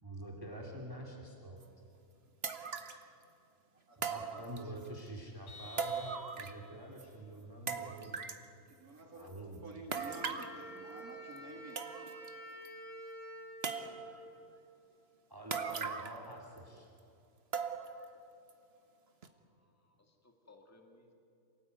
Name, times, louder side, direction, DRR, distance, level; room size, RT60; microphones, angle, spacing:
voice 1, 0.0-1.6 4.0-8.2 9.1-9.6 15.3-16.9, right 1 dB, 15° right, 0 dB, 2.4 m, -47 dB
sound 1, 1.6-1.7 2.4-3.0 4.0-4.9 5.8-6.7 7.0-7.1 7.7-8.5 9.9-10.6 11.4-11.5 11.8-12.3 12.7-12.8 13.6-14.2 15.5-16.3 16.6-16.7 17.5-18.1 18.5-18.6 19.2-19.3, right 5 dB, 40° right, 1.5 m, -39 dB
voice 2, 2.6-3.1 19.3-21.1, left 2 dB, 10° left, 3 dB, 2.3 m, -64 dB
Vehicle horn car horn honking, 5.5-6.9, left 1 dB, 55° left, 1.8 m, -52 dB
voice 3, 8.8-9.3 9.6-11.9, right 2 dB, 65° right, 1 dB, 2.8 m, -50 dB
Wind instrument woodwind instrument, 9.9-14.7, right 1 dB, 30° left, 5.6 m, -49 dB
27.5 x 18.5 x 9.4 m, 2.8 s
omnidirectional pair, 1.7 m